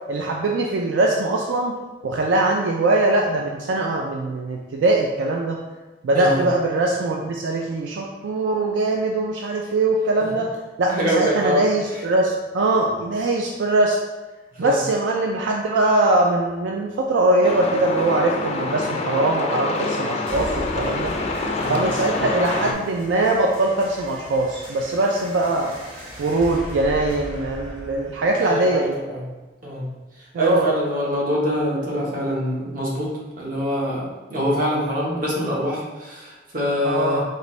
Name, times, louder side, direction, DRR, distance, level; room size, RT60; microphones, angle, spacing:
voice 1, 0.1-1.7 2.0-5.6 6.0-10.5 10.8-14.0 14.6-21.1 21.7-25.7 26.2-29.0 30.3-30.7 36.8-37.2, right 2 dB, 80° right, 0 dB, 0.3 m, -21 dB
voice 2, 10.9-11.6 14.5-14.8 21.6-22.2 22.5-22.7 28.4-29.2 29.6-29.9 30.4-37.2, equal, 50° right, -4 dB, 0.9 m, -24 dB
Truck, 17.4-22.7, left 2 dB, 35° left, 0.3 m, -26 dB
sound 1, 20.3-29.3, equal, 30° right, 1.1 m, -38 dB
3.9 x 2.6 x 3.1 m, 1.2 s
head